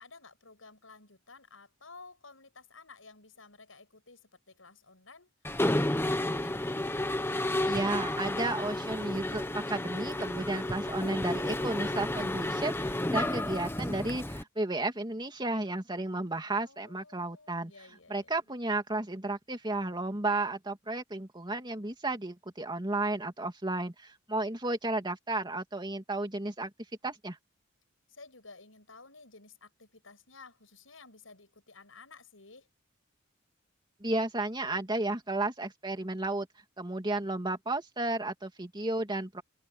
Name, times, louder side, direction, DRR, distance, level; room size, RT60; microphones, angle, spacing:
voice 1, 0.0-5.3 16.6-18.3 28.1-32.7, left 4 dB, 80° left, 6.7 m, -54 dB
Mechanisms, 5.4-14.4, left 1 dB, 10° left, 1.1 m, -31 dB
voice 2, 7.6-17.7 18.1-26.7 27.0-27.4 34.0-36.5 36.8-39.4, right 2 dB, 20° right, 2.8 m, -33 dB
head